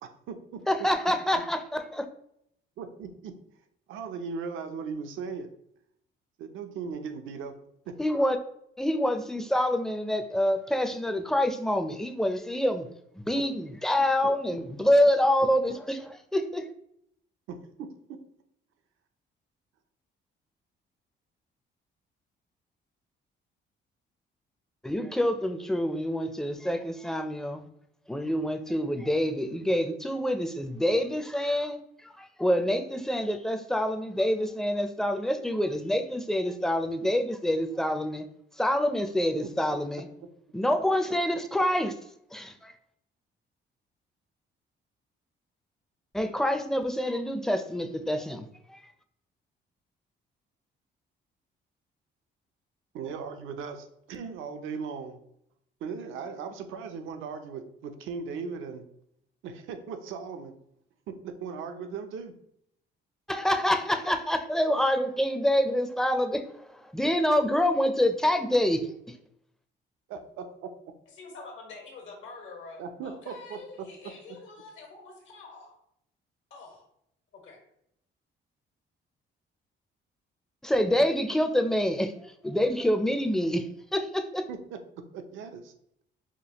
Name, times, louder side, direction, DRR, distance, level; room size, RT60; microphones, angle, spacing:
voice 1, 0.0-0.9 2.8-3.4 3.9-5.5 6.4-7.6 7.9-8.0 13.3-13.5 14.2-14.3 17.5-18.2 52.9-55.2 55.8-58.9 59.4-60.5 61.1-62.3 70.1-70.7 72.8-73.9 84.5-85.7, right 5 dB, 85° right, 7 dB, 0.5 m, -38 dB
voice 2, 0.7-2.1 8.0-8.4 8.8-12.9 13.3-16.6 24.8-27.7 28.1-31.8 32.2-38.2 38.6-40.1 40.5-41.9 42.3-42.7 46.1-48.8 63.3-66.4 66.9-68.9 80.6-82.1 82.4-83.7 83.9-84.4, left 1 dB, ahead, 7 dB, 0.4 m, -26 dB
voice 3, 71.1-75.8 76.5-76.8 77.3-77.6, left 4 dB, 75° left, 0 dB, 1.4 m, -46 dB
5.0 x 2.3 x 2.9 m, 0.74 s
cardioid pair, 90°, 20 cm